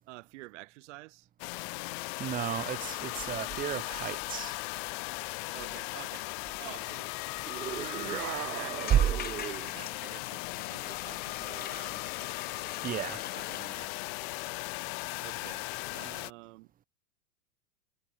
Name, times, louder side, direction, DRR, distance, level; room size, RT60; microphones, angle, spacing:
voice 1, 0.1-1.3 5.5-6.3 6.6-7.1 7.6-12.1 13.3-13.9 15.2-16.7, right 22 dB, 50° right, 3.7 m, -49 dB
sound 1, 1.4-16.3, left 34 dB, 45° left, 2.2 m, -37 dB
voice 2, 2.2-4.5 8.9-9.0 12.8-13.2, right 10 dB, 20° right, 1.3 m, -31 dB
sound 2, 7.4-9.8, right 12 dB, 90° right, 1.1 m, -38 dB
sound 3, 8.8-13.7, left 10 dB, 20° left, 2.8 m, -45 dB
hypercardioid pair, 135°, 44 cm